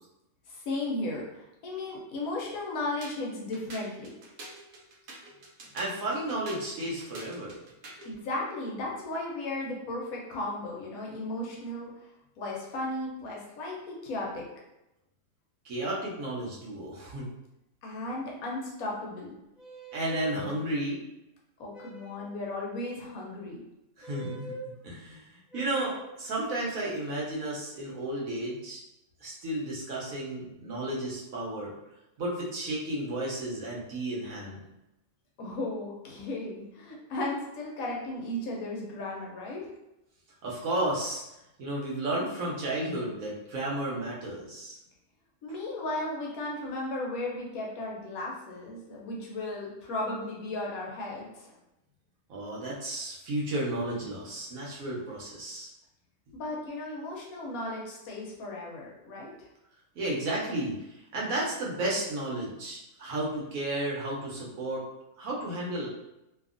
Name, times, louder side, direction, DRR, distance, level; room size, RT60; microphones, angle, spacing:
voice 1, 0.5-4.1 8.0-12.1 12.4-14.4 17.8-19.3 21.6-23.6 35.4-39.7 45.4-51.6 56.3-59.3, left 2 dB, 70° left, -2 dB, 1.0 m, -35 dB
sound 1, 3.0-8.2, right 2 dB, 90° right, 1.2 m, -47 dB
voice 2, 5.7-7.6 15.6-17.3 19.9-21.0 24.0-24.6 24.8-28.8 29.2-31.7 32.2-34.6 40.4-41.2 41.6-44.8 52.3-55.7 60.0-64.8 65.2-65.9, right 1 dB, 65° right, -4 dB, 1.0 m, -33 dB
sound 2, 19.6-20.5 21.7-22.3 24.0-24.7 25.5-26.1, right 2 dB, ahead, 0.8 m, -44 dB
2.7 x 2.3 x 2.4 m, 0.90 s
omnidirectional pair, 1.7 m